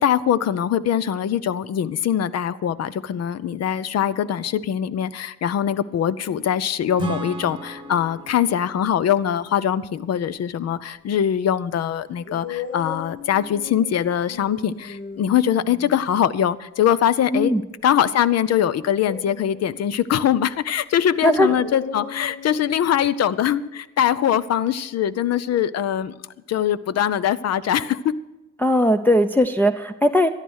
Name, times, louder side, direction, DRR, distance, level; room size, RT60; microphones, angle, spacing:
voice 1, 0.0-17.5 17.8-26.1 26.5-28.2, left 9 dB, 55° left, 18 dB, 0.7 m, -22 dB
sound 1, 6.2-6.6 7.5-8.1 11.1-11.2 12.2-16.2 19.0-20.2 21.4-22.6, left 6 dB, 40° left, 1.1 m, -37 dB
Acoustic guitar / Strum, 7.0-10.6, right 3 dB, 15° right, 1.5 m, -35 dB
voice 2, 28.6-30.3, equal, 5° left, 3 dB, 0.6 m, -18 dB
13.5 x 10.5 x 6.4 m, 1.0 s
cardioid pair, 90°, 30 cm